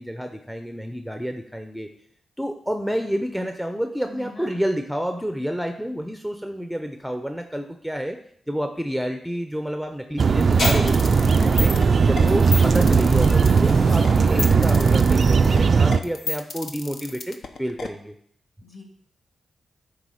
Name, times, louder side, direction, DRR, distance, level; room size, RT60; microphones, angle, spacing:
voice 1, 0.0-1.9 2.4-8.2 8.5-11.7 12.1-18.1, equal, ahead, 5 dB, 0.6 m, -29 dB
voice 2, 4.1-4.5 11.4-11.8 18.6-18.8, left 2 dB, 45° left, 0 dB, 2.8 m, -40 dB
sound 1, 10.2-16.0, right 5 dB, 55° right, 0.3 m, -18 dB
sound 2, 10.4-17.9, left 4 dB, 65° left, 0.8 m, -31 dB
sound 3, 10.5-15.7, left 1 dB, 85° left, 2.4 m, -31 dB
9.5 x 3.5 x 6.3 m, 0.67 s
cardioid pair, 75°, 0 cm